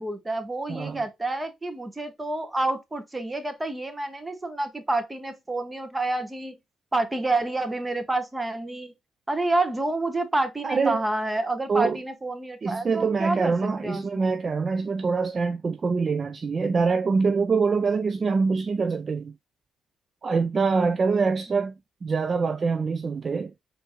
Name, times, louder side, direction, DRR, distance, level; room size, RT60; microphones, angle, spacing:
voice 1, 0.0-6.6 6.9-8.9 9.3-14.3, right 2 dB, 15° right, 1.0 m, -28 dB
voice 2, 0.7-1.0 10.6-11.0 11.7-12.0 12.6-19.3 20.2-21.7 22.0-23.5, right 4 dB, 40° right, 0.3 m, -24 dB
4.4 x 2.6 x 3.0 m
cardioid pair, 90°, 0 cm